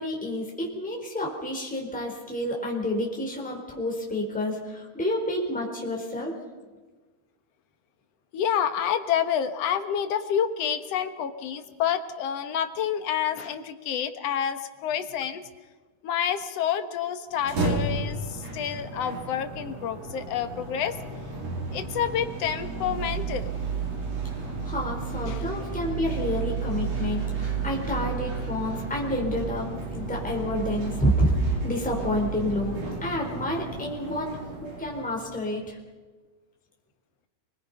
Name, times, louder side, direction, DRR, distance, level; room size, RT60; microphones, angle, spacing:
voice 1, 0.0-6.3 24.2-32.7 33.0-35.8, left 1 dB, 5° left, -1 dB, 4.2 m, -29 dB
voice 2, 8.3-15.4 16.0-21.0 21.7-23.5 25.2-25.5, left 8 dB, 65° left, 8 dB, 2.2 m, -28 dB
sound 1, 17.3-35.5, right 4 dB, 65° right, 4.5 m, -32 dB
29.5 x 20.5 x 5.6 m, 1.3 s
omnidirectional pair, 3.3 m